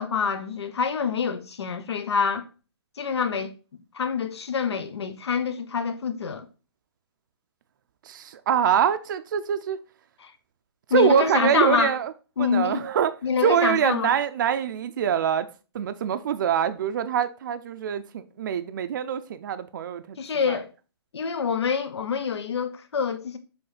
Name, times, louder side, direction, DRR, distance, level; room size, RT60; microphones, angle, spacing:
voice 1, 0.0-2.4 3.0-3.5 3.9-6.4 10.2-10.3 10.9-11.9 12.4-12.8 13.2-14.1 20.2-20.7 21.1-23.4, left 6 dB, 85° left, 1.0 m, -26 dB
voice 2, 8.1-9.8 10.9-12.1 12.4-13.1 13.4-15.5 15.7-20.2 20.5-20.6, right 8 dB, 50° right, 0.5 m, -24 dB
7.0 x 3.1 x 5.0 m
hypercardioid pair, 170°, 14 cm